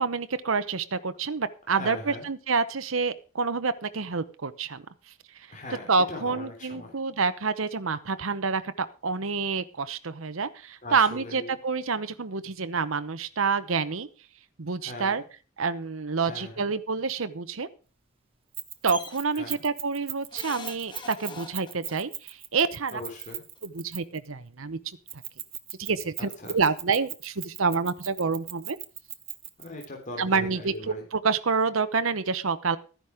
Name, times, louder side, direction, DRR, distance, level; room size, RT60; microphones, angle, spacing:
voice 1, 0.0-4.9 5.3-5.5 5.9-14.1 14.6-15.2 15.6-17.7 18.8-23.0 23.6-25.2 25.8-28.8 30.2-32.8, right 5 dB, 70° right, 11 dB, 0.9 m, -28 dB
voice 2, 1.7-2.3 5.5-7.0 10.8-11.5 14.8-15.2 16.2-16.7 19.3-19.6 22.9-23.4 26.4-26.5 29.6-31.1, left 2 dB, 40° left, 1 dB, 3.5 m, -40 dB
Keys jangling, 18.5-24.3 25.1-29.9, right 11 dB, 30° right, 1.0 m, -38 dB
sound 1, 18.9-19.2 20.3-22.0 23.2-23.3 23.6-23.7, left 4 dB, 25° left, 1.5 m, -42 dB
13.5 x 10.0 x 5.0 m, 0.36 s
head